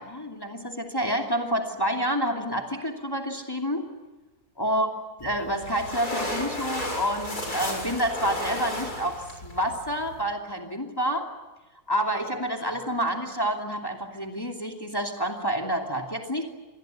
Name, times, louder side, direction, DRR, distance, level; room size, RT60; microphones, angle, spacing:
voice 1, 0.0-3.9 4.6-4.9 5.2-11.3 11.9-16.5, equal, 15° left, 2 dB, 2.7 m, -28 dB
sound 1, 5.2-10.2, left 1 dB, 80° left, 7.5 m, -34 dB
27.0 x 21.5 x 9.2 m, 1.2 s
omnidirectional pair, 1.6 m